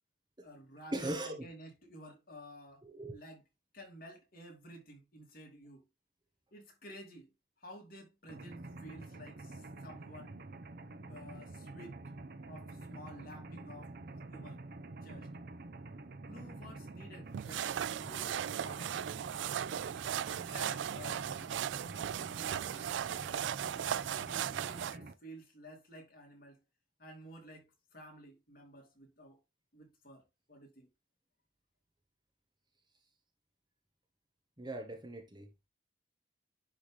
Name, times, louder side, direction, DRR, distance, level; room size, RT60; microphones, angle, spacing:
voice 1, 0.4-2.8 3.1-3.4 3.7-5.8 6.5-7.3 7.6-10.4 11.1-12.0 12.5-13.9 14.3-14.6 15.0-15.3 16.3-17.7 18.0-19.0 20.2-21.5 22.2-23.0 23.3-26.6 27.0-29.4 29.7-30.9, equal, 50° left, 2.7 m, -52 dB
voice 2, 0.9-1.5 2.8-3.2 34.6-35.5, right 1 dB, 25° right, 1.2 m, -39 dB
Mechanisms, 8.3-25.1, right 2 dB, 55° right, 0.7 m, -48 dB
sound 1, 17.3-25.0, right 10 dB, 75° right, 0.3 m, -37 dB
10.0 x 3.8 x 3.3 m
head